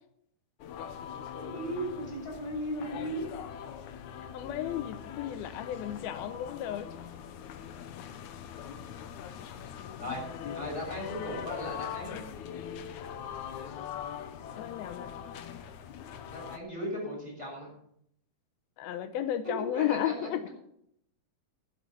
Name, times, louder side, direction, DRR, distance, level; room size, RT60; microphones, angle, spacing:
sound 1, 0.6-16.6, left 8 dB, 70° left, 1.9 m, -42 dB
voice 1, 1.3-3.2 10.0-10.2 10.5-12.1 16.2-17.7 19.7-20.3, equal, 10° right, -2 dB, 6.6 m, -36 dB
voice 2, 4.3-6.9 14.6-15.1 18.8-20.5, left 11 dB, 85° left, 11 dB, 2.7 m, -33 dB
12.0 x 7.0 x 8.3 m, 0.71 s
omnidirectional pair, 4.3 m